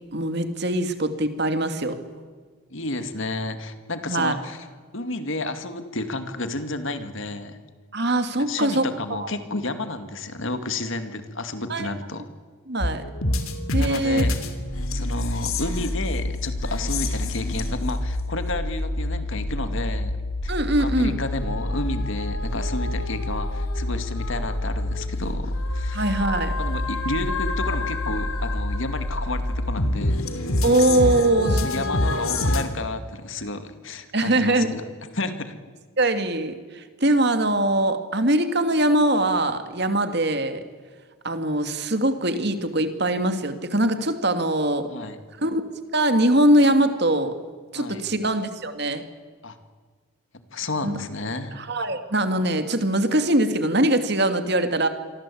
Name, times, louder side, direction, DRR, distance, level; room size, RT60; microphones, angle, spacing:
voice 1, 0.1-2.0 4.1-4.3 7.9-8.9 11.7-11.9 12.7-13.0 13.7-14.2 20.5-21.2 25.9-26.5 30.6-32.2 34.1-34.7 36.0-40.6 41.2-44.9 45.4-45.6 45.9-47.3 47.7-49.0 50.8-51.0 51.6-54.9, right 1 dB, 50° right, 8 dB, 2.4 m, -22 dB
voice 2, 2.7-4.7 4.9-7.6 8.4-12.3 13.8-14.3 14.9-20.2 20.4-26.2 26.6-30.2 30.8-30.9 31.6-34.8 35.1-35.6 44.9-45.2 47.7-48.1 49.4-49.6 50.5-51.6, left 2 dB, 65° left, 9 dB, 2.3 m, -31 dB
sound 1, 12.8-32.6, left 1 dB, 80° left, 3.1 m, -27 dB
28.0 x 23.5 x 8.6 m, 1.5 s
head